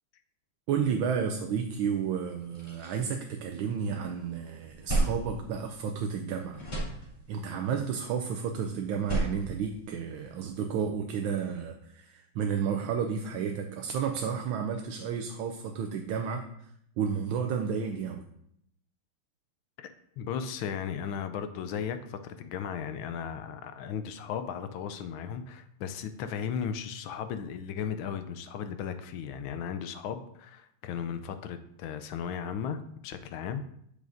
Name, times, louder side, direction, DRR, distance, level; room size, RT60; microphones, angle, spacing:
voice 1, 0.7-6.9 7.3-16.7 17.0-18.2, right 7 dB, 75° right, 5 dB, 1.3 m, -32 dB
sound 1, 2.3-4.0 4.4-6.2 6.5-7.6 8.8-10.5, right 2 dB, 30° left, 2.3 m, -34 dB
voice 2, 19.8-33.7, left 7 dB, 75° left, 10 dB, 1.3 m, -36 dB
8.4 x 6.5 x 2.6 m, 0.72 s
omnidirectional pair, 2.4 m